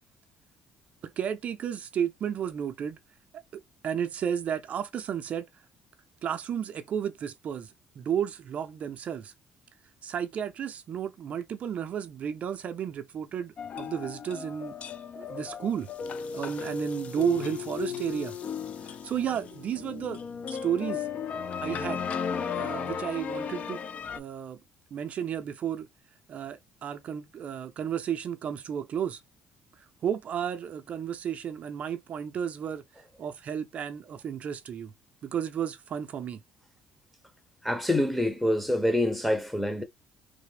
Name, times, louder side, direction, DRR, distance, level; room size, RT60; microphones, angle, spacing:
voice 1, 1.0-3.0 3.8-5.5 6.2-9.3 10.0-14.8 15.2-15.9 16.3-18.4 18.8-20.2 20.5-21.1 21.6-22.0 22.5-23.8 24.2-24.6 24.9-25.9 26.3-29.2 29.8-32.8 33.2-34.9 35.2-36.4, right 8 dB, 50° right, 0.4 m, -32 dB
sound 1, 13.6-24.2, left 7 dB, 45° left, 0.4 m, -35 dB
voice 2, 37.6-39.8, left 1 dB, 5° left, 0.7 m, -26 dB
3.2 x 2.1 x 3.2 m
cardioid pair, 105°, 3 cm